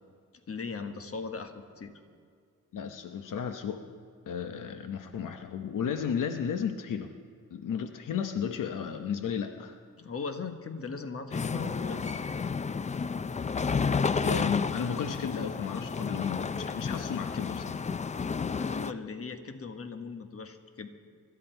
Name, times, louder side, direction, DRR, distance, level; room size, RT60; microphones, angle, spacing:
voice 1, 0.5-1.9 10.0-12.2 18.4-20.9, left 4 dB, 45° left, 7 dB, 1.3 m, -38 dB
voice 2, 2.7-3.8 4.3-7.1 7.5-9.8 14.2-17.9, left 7 dB, 80° left, 7 dB, 0.9 m, -33 dB
sound 1, 11.3-18.9, left 5 dB, 25° left, 0.4 m, -31 dB
25.0 x 13.0 x 4.5 m, 2.2 s
wide cardioid pair, 120°, 31 cm